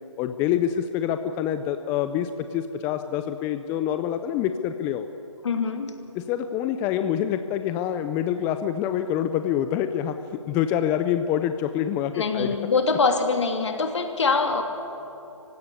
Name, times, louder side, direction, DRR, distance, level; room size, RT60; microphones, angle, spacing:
voice 1, 0.2-5.1 6.2-10.2 10.5-12.5, left 10 dB, 15° left, 9 dB, 0.5 m, -26 dB
voice 2, 5.4-5.9 12.1-14.6, left 4 dB, 65° left, 5 dB, 3.0 m, -24 dB
25.0 x 16.0 x 9.9 m, 2.9 s
figure-of-eight pair, 150°, 16 cm